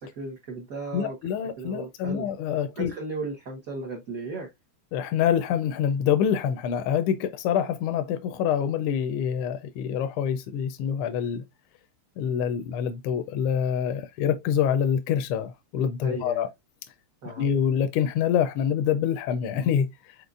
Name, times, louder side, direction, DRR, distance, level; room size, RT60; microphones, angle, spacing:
voice 1, 0.2-1.2 1.6-2.3 2.7-4.5 16.0-16.5 17.2-17.5, right 3 dB, 50° right, 1.3 m, -35 dB
voice 2, 0.9-2.9 4.9-11.4 12.2-16.5 17.4-19.9, left 8 dB, 85° left, 1.5 m, -26 dB
5.2 x 4.2 x 2.4 m
omnidirectional pair, 2.4 m